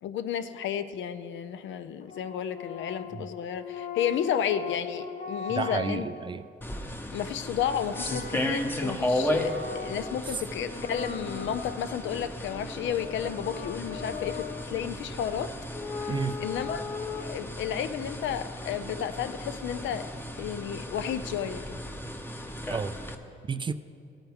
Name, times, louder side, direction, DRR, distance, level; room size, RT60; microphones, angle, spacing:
voice 1, 0.0-6.0 7.1-15.5 16.0-16.1 16.4-16.8 17.2-20.1 20.4-21.8, left 9 dB, 70° left, 11 dB, 0.6 m, -32 dB
sound 1, 2.0-6.3 7.4-10.3 10.6-12.2 12.8-14.7 15.7-17.2, left 6 dB, 40° left, 0.8 m, -39 dB
voice 2, 5.5-6.4 10.3-10.4 16.1-16.4 22.7-22.9 23.5-23.7, right 5 dB, 25° right, 13 dB, 0.4 m, -31 dB
sound 2, 6.6-23.1, left 1 dB, 10° left, 0.8 m, -35 dB
16.5 x 9.1 x 3.5 m, 2.5 s
cardioid pair, 90°, 20 cm